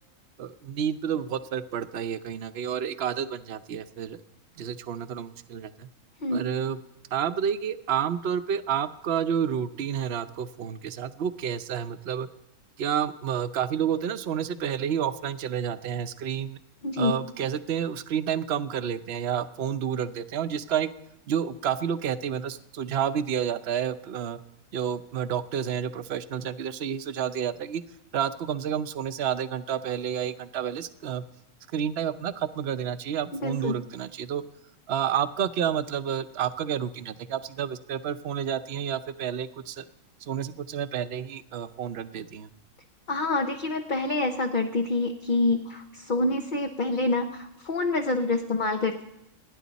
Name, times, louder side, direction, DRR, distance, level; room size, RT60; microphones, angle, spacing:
voice 1, 0.4-4.2 4.6-5.9 6.3-6.8 7.1-12.3 12.8-16.6 17.0-20.9 21.3-24.4 24.7-27.8 28.1-31.2 31.7-34.4 34.9-39.9 40.2-42.5, right 8 dB, 55° right, 11 dB, 1.0 m, -30 dB
voice 2, 16.8-17.2 33.3-33.8 43.1-49.0, left 2 dB, 45° left, 3 dB, 1.0 m, -27 dB
29.5 x 10.5 x 4.1 m, 0.85 s
omnidirectional pair, 1.3 m